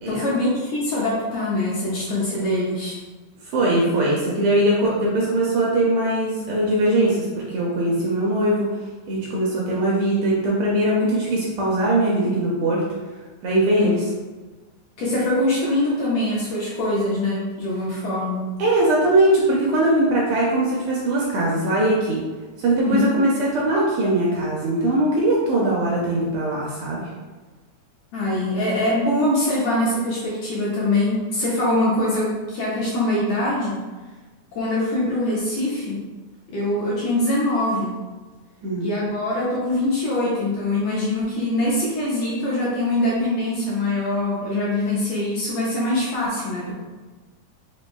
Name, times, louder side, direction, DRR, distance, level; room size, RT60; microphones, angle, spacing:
voice 1, 0.1-3.0 13.8-13.9 15.0-18.5 22.8-23.1 28.1-33.8 34.5-36.0 36.5-38.0 38.8-46.7, left 1 dB, 75° left, -6 dB, 1.6 m, -23 dB
voice 2, 3.4-8.7 9.1-12.8 13.4-14.0 18.6-22.2 22.6-27.1 38.6-38.9, right 1 dB, 75° right, -4 dB, 1.6 m, -21 dB
5.3 x 2.6 x 2.2 m, 1.3 s
omnidirectional pair, 3.5 m